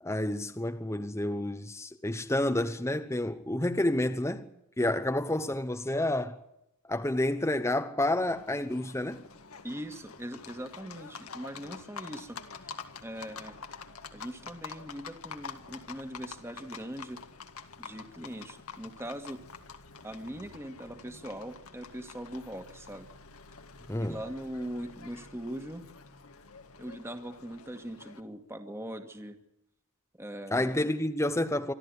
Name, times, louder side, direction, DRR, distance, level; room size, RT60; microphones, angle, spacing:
voice 1, 0.0-4.5 4.8-6.4 6.9-9.3 23.9-24.2 30.5-31.7, left 1 dB, 15° left, 0.9 m, -29 dB
Livestock farm animals working animals, 8.3-28.2, left 5 dB, 75° left, 1.9 m, -47 dB
voice 2, 9.6-12.4 12.6-13.6 14.1-17.2 17.8-19.4 20.0-23.1 24.0-25.8 26.8-29.4 30.2-30.9, right 1 dB, 10° right, 1.8 m, -41 dB
25.5 x 13.5 x 9.9 m
head